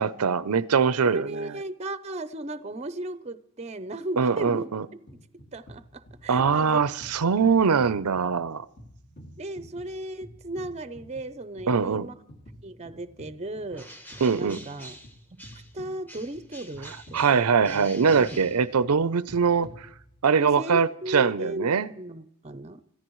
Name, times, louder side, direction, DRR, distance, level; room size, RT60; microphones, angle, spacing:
voice 1, 0.0-1.5 4.2-4.9 6.3-8.7 11.7-12.1 14.2-14.6 17.1-19.9 20.2-21.9, right 6 dB, 85° right, 0.6 m, -22 dB
voice 2, 1.0-4.7 5.5-6.8 9.4-12.2 12.6-13.9 14.3-14.9 15.5-16.9 17.3-18.4 20.4-22.8, right 1 dB, 30° right, 0.6 m, -36 dB
sound 1, 5.1-20.4, equal, 50° left, 2.3 m, -50 dB
Bird, 13.7-15.8 16.1-19.1, equal, 10° left, 1.0 m, -47 dB
26.0 x 14.0 x 3.1 m
head